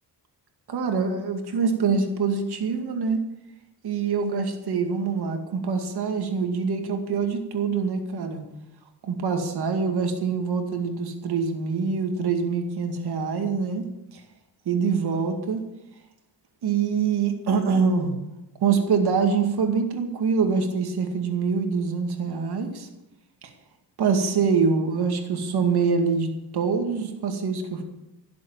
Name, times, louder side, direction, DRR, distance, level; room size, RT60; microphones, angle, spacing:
voice 1, 0.7-3.3 3.8-8.4 9.0-13.8 14.1-14.2 14.7-15.6 16.6-18.1 18.6-22.9 24.0-27.8, right 5 dB, 75° right, 4 dB, 2.3 m, -25 dB
17.0 x 7.7 x 7.3 m, 0.91 s
wide cardioid pair, 135°, 39 cm